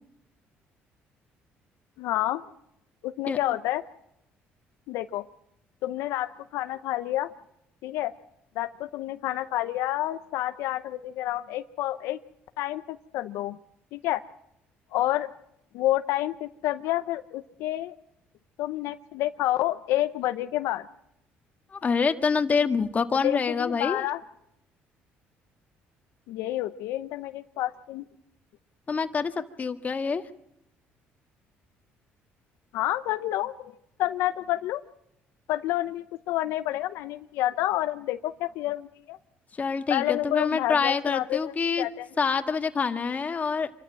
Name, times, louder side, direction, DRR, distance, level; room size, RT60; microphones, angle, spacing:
voice 1, 2.0-2.4 3.0-3.8 4.9-5.2 5.8-7.3 7.8-8.1 8.6-12.2 12.6-13.6 13.9-14.2 14.9-15.3 15.7-17.9 18.6-20.8 23.2-24.2 26.3-28.0 32.7-34.8 35.5-39.2 39.9-42.1, left 14 dB, 80° left, 10 dB, 0.7 m, -29 dB
voice 2, 21.7-24.0 28.9-30.2 39.6-41.9 42.2-43.7, left 5 dB, 35° left, 8 dB, 1.7 m, -26 dB
26.5 x 13.5 x 7.6 m, 0.81 s
cardioid pair, 90°, 5 cm